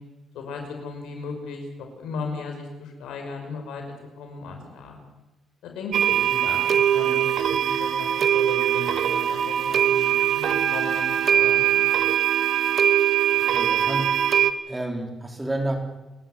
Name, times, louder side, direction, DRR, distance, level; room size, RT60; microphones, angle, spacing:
voice 1, 0.3-3.8 4.2-5.0 5.6-11.8, left 4 dB, 85° left, 3 dB, 5.8 m, -36 dB
sound 1, 5.9-14.5, right 10 dB, 60° right, 1.3 m, -22 dB
voice 2, 13.3-14.1 14.7-15.8, right 1 dB, 15° right, 3 dB, 4.7 m, -30 dB
28.5 x 13.5 x 8.0 m, 1.0 s
cardioid pair, 90°, 0 cm